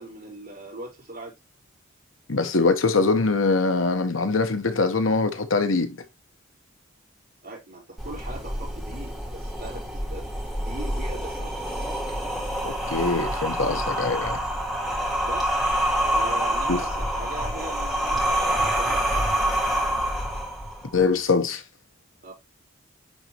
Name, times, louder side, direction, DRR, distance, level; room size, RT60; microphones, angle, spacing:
voice 1, 0.0-1.3 7.4-11.5 12.1-12.2 15.2-15.6 16.1-19.5 22.2-22.3, right 2 dB, 50° right, 4.6 m, -40 dB
voice 2, 2.3-6.0 12.9-14.4 16.7-16.8 20.9-21.6, left 3 dB, 85° left, 1.1 m, -23 dB
sound 1, 8.0-21.0, right 1 dB, ahead, 1.9 m, -27 dB
9.7 x 4.0 x 2.9 m
head